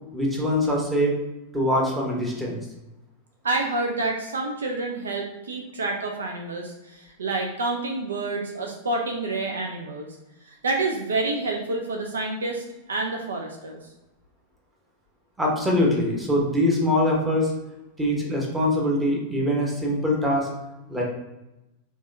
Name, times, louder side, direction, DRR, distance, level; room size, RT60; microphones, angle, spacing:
voice 1, 0.1-1.1 1.5-2.6 15.4-17.5 18.0-20.5 20.9-21.0, left 1 dB, 10° right, -3 dB, 1.1 m, -23 dB
voice 2, 3.4-10.1 10.5-13.8, right 2 dB, 70° right, 1 dB, 0.5 m, -28 dB
3.3 x 3.2 x 2.6 m, 0.98 s
figure-of-eight pair, 90°, 0 cm